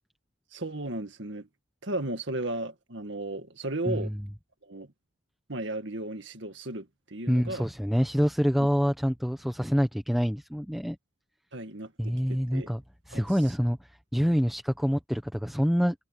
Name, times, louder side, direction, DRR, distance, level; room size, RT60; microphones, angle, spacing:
voice 1, 0.5-1.5 1.8-4.1 4.6-4.9 5.5-7.7 11.5-12.7 13.1-13.2, right 2 dB, 60° right, 2.0 m, -35 dB
voice 2, 3.8-4.2 7.3-11.0 12.0-12.8 13.1-15.9, equal, ahead, 0.9 m, -26 dB
head